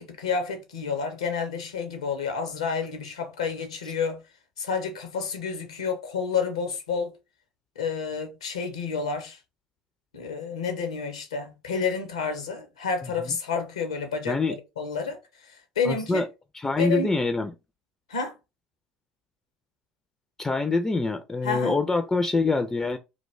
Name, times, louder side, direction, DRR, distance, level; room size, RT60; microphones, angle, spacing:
voice 1, 0.0-4.2 4.6-7.1 7.8-9.4 10.1-14.4 14.8-15.2 15.4-16.2 16.8-17.1 18.1-18.3 21.4-21.8, left 5 dB, 75° left, 0.5 m, -30 dB
voice 2, 15.8-16.3 16.5-17.5 20.4-23.0, left 3 dB, 15° left, 0.3 m, -25 dB
2.3 x 2.1 x 3.1 m
figure-of-eight pair, 60°, 3 cm